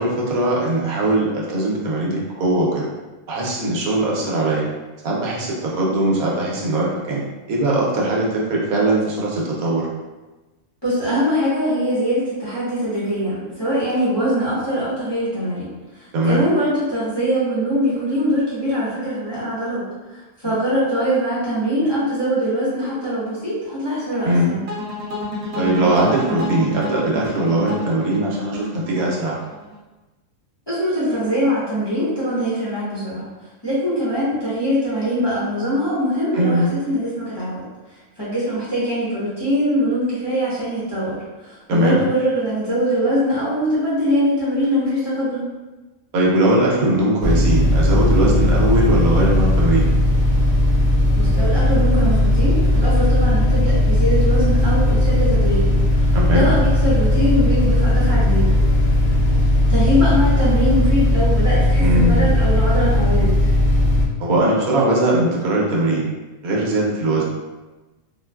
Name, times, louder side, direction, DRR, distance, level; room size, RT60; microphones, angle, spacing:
voice 1, 0.0-2.9 3.3-4.7 5.0-9.9 16.1-16.5 24.2-24.5 25.6-29.4 36.3-36.7 41.7-42.0 46.1-49.9 56.1-56.5 61.8-62.3 64.2-66.1 66.4-67.3, right 1 dB, 80° right, -4 dB, 1.2 m, -20 dB
voice 2, 10.8-15.7 15.9-19.8 20.1-24.6 30.7-33.3 33.6-37.6 38.2-45.5 51.1-58.5 59.7-63.5, equal, 20° left, -12 dB, 0.9 m, -22 dB
sound 1, 24.7-29.8, left 2 dB, 60° right, 0.8 m, -30 dB
sound 2, 47.2-64.0, left 1 dB, 55° left, 1.0 m, -17 dB
3.9 x 2.2 x 2.3 m, 1.2 s
omnidirectional pair, 1.5 m